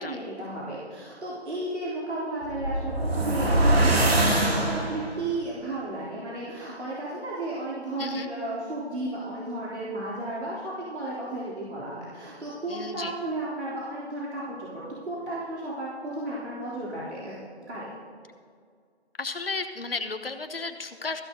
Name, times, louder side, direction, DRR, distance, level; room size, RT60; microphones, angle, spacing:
voice 1, 0.0-17.3 17.7-17.9, right 1 dB, 80° right, -7 dB, 3.7 m, -33 dB
sound 1, 2.4-5.3, right 1 dB, 65° right, 2.3 m, -23 dB
voice 2, 12.7-13.1 19.2-21.2, left 3 dB, 60° left, 8 dB, 1.2 m, -33 dB
15.0 x 13.0 x 3.9 m, 2.1 s
figure-of-eight pair, 180°, 33 cm